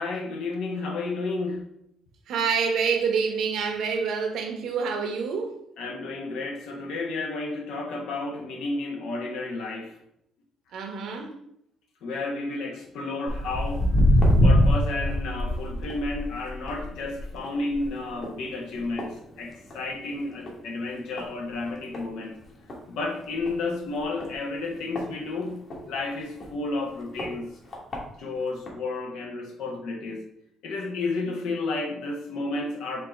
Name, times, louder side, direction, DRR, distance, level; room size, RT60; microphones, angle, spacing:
voice 1, 0.0-1.6 5.8-9.9 12.0-13.9 14.4-22.4 22.9-25.6 25.9-27.5 28.2-30.3 30.6-33.1, left 3 dB, 85° left, 1.0 m, -32 dB
voice 2, 2.3-5.6 10.7-11.4, right 5 dB, 75° right, 0.9 m, -27 dB
Walk footsteps, 13.3-19.9 20.3-20.6 21.2-21.3 21.9-22.0 22.4-22.5 22.7-22.8 23.4-23.6 24.2-25.8 26.4-26.5 27.2-27.3 27.7-28.0 28.7-28.8, equal, 40° left, 1.4 m, -24 dB
4.3 x 2.7 x 4.3 m
cardioid pair, 110°, 0 cm